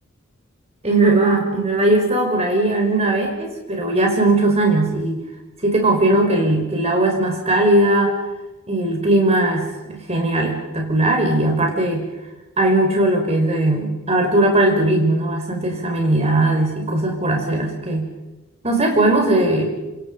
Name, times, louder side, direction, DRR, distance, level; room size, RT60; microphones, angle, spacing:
voice 1, 0.8-5.2 5.6-8.2 8.7-12.1 12.6-18.1 18.6-19.7, right 2 dB, 30° right, 2 dB, 5.7 m, -18 dB
27.0 x 27.0 x 5.6 m, 1.0 s
head